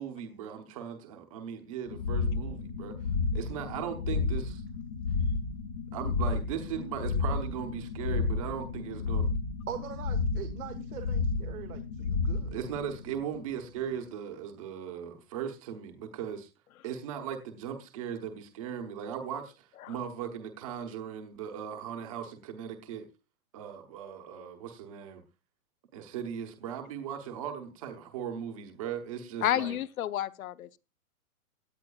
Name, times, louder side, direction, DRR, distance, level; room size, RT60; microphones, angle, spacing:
voice 1, 0.0-2.9 3.3-4.6 5.9-9.3 12.5-16.5 16.8-23.1 23.5-25.2 25.9-29.8, right 8 dB, 25° right, 1.0 m, -38 dB
sound 1, 1.9-13.6, left 4 dB, 20° left, 0.7 m, -32 dB
voice 2, 9.7-12.6, right 9 dB, 90° right, 1.5 m, -42 dB
voice 3, 29.4-30.8, left 12 dB, 75° left, 0.8 m, -30 dB
17.0 x 10.0 x 2.4 m
hypercardioid pair, 180°, 42 cm